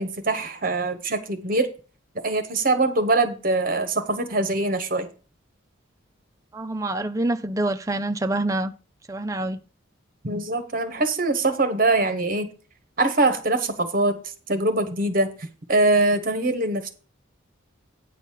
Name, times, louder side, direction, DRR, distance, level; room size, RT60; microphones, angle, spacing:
voice 1, 0.0-1.7 2.2-5.1 10.2-12.5 13.0-16.9, right 2 dB, 45° right, 1.1 m, -23 dB
voice 2, 6.5-8.7 9.1-9.6, right 2 dB, 15° right, 0.5 m, -26 dB
9.1 x 4.1 x 7.3 m
head